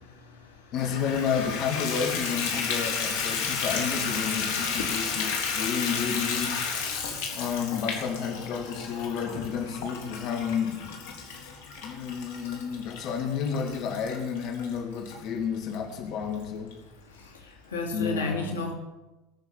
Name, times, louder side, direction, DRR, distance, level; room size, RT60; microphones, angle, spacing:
voice 1, 0.7-6.6 7.4-11.0 11.8-16.7 17.9-18.5, left 7 dB, 50° left, 4 dB, 2.5 m, -31 dB
Water tap faucet / Bathtub (filling or washing), 0.8-15.2 15.7-15.8 16.3-16.4 16.7-16.8, left 5 dB, 65° left, 3.7 m, -32 dB
voice 2, 4.4-4.9 7.5-7.6 9.7-9.8 17.2-18.7, left 3 dB, 85° left, 2 dB, 2.9 m, -33 dB
21.0 x 7.2 x 7.5 m, 1.1 s
hypercardioid pair, 85°, 0 cm